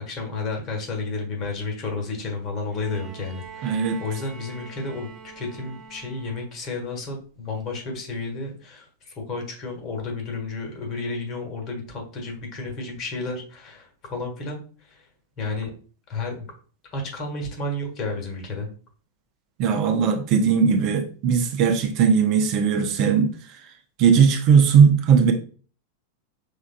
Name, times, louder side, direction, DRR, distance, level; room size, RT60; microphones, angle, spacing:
voice 1, 0.0-5.1 5.3-15.1 15.4-15.7 16.1-16.5 16.9-18.7, left 3 dB, 35° left, 2 dB, 1.4 m, -32 dB
Bowed string instrument, 2.7-6.7 8.0-8.1, right 6 dB, 5° right, 0.9 m, -44 dB
voice 2, 3.6-4.0 19.6-23.3 24.0-25.3, right 6 dB, 40° right, 5 dB, 0.6 m, -18 dB
5.4 x 3.5 x 2.2 m, 0.40 s
figure-of-eight pair, 90°, 0 cm